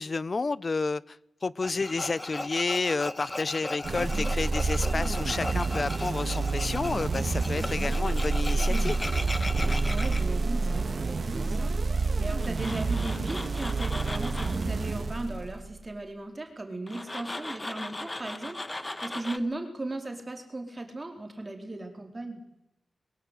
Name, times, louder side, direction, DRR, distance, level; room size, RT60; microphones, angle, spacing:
voice 1, 0.0-9.0, left 3 dB, 40° left, 0.8 m, -30 dB
Tools, 1.6-10.2 12.4-14.6 16.9-19.4, left 2 dB, 20° left, 1.5 m, -37 dB
sound 1, 3.8-15.8, right 3 dB, 50° right, 2.0 m, -28 dB
voice 2, 9.8-22.4, right 2 dB, 25° right, 4.3 m, -37 dB
23.0 x 21.0 x 8.3 m
wide cardioid pair, 105°, 0 cm